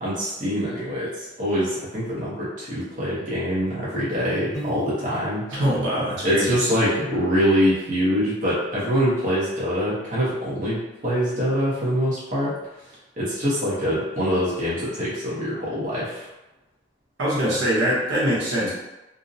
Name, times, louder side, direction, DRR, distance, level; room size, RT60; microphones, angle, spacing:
voice 1, 0.0-5.5 6.2-12.6 13.2-16.3, equal, 40° right, -8 dB, 0.7 m, -24 dB
Piano, 4.5-5.5, equal, 15° left, 1.0 m, -35 dB
voice 2, 5.5-6.7 17.2-18.7, equal, 80° right, -6 dB, 0.8 m, -23 dB
2.6 x 2.0 x 2.6 m, 0.98 s
head